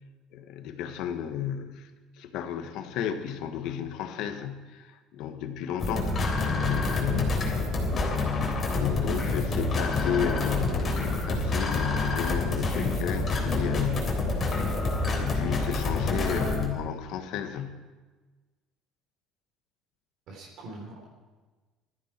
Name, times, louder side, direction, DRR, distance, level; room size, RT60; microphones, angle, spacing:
voice 1, 0.3-1.9 2.2-7.4 8.7-14.1 15.1-17.8, left 9 dB, 65° left, 7 dB, 1.4 m, -33 dB
sound 1, 5.8-16.6, left 3 dB, 25° left, 3.6 m, -27 dB
voice 2, 20.3-21.1, right 1 dB, 50° right, -1 dB, 3.6 m, -41 dB
20.5 x 14.0 x 4.5 m, 1.3 s
cardioid pair, 160°, 0 cm